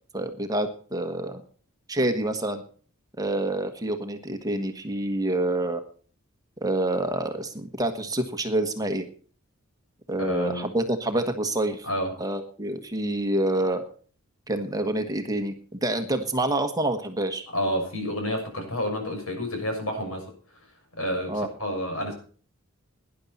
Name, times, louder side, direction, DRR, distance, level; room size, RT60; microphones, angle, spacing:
voice 1, 0.1-1.4 1.9-2.6 3.2-5.8 6.6-9.0 10.1-11.9 12.2-13.8 14.5-15.5 15.8-17.4 21.3-21.5, right 1 dB, 15° right, 6 dB, 1.4 m, -27 dB
voice 2, 10.2-10.6 11.8-12.1 17.5-20.3 21.0-22.1, equal, 70° left, 4 dB, 6.5 m, -29 dB
18.0 x 11.0 x 4.2 m, 0.42 s
head